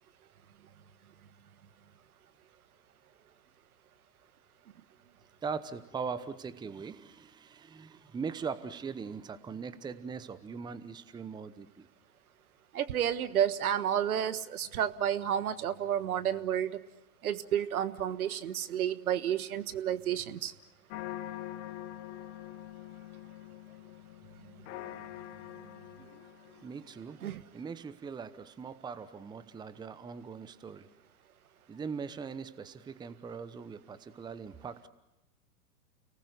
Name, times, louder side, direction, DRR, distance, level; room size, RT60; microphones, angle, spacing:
voice 1, 5.4-11.9 26.6-27.2 27.5-30.9 31.7-34.9, right 5 dB, 10° right, 14 dB, 0.9 m, -40 dB
voice 2, 12.7-16.8 17.2-20.5 27.2-27.4, right 10 dB, 65° right, 13 dB, 1.4 m, -31 dB
sound 1, 20.9-27.0, left 13 dB, 45° left, 1.2 m, -44 dB
30.0 x 19.0 x 8.1 m, 0.96 s
figure-of-eight pair, 105°, 46 cm